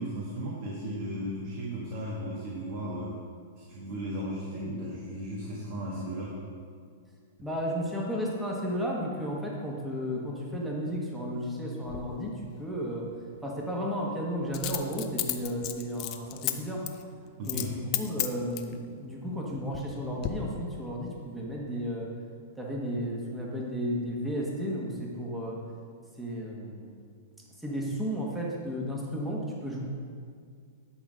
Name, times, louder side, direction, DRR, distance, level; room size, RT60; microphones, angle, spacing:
voice 1, 0.0-3.1 3.6-6.3 17.4-17.8, equal, 50° right, -5 dB, 1.9 m, -35 dB
voice 2, 7.4-13.1 13.4-16.9 17.4-22.1 22.6-25.6 26.2-27.0 27.6-29.8, equal, 5° right, -3 dB, 1.4 m, -33 dB
Coin (dropping), 11.9-12.0 14.5-16.5 16.9-17.0 17.4-17.7 17.9-18.7 19.4-19.9 20.2-20.3, left 15 dB, 35° left, 0.6 m, -32 dB
11.5 x 4.0 x 6.2 m, 2.2 s
hypercardioid pair, 140°, 0 cm